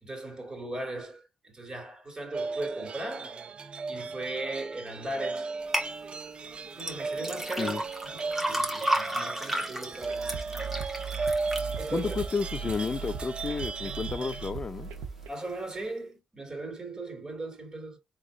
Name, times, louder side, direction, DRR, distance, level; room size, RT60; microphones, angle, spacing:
voice 1, 0.0-3.4 3.9-5.5 6.8-7.8 8.1-10.3 11.8-12.2 15.3-18.0, right 2 dB, 25° right, 2.5 m, -38 dB
sound 1, 2.3-14.5, right 4 dB, 45° right, 0.6 m, -36 dB
sound 2, 5.7-5.9 6.8-12.9 13.4-13.9 14.4-14.5, right 1 dB, 10° right, 1.6 m, -32 dB
sound 3, 10.0-15.3, right 6 dB, 85° right, 0.8 m, -39 dB
voice 2, 11.9-14.9, left 4 dB, 40° left, 0.4 m, -31 dB
4.0 x 2.9 x 3.7 m
supercardioid pair, 55°, 3 cm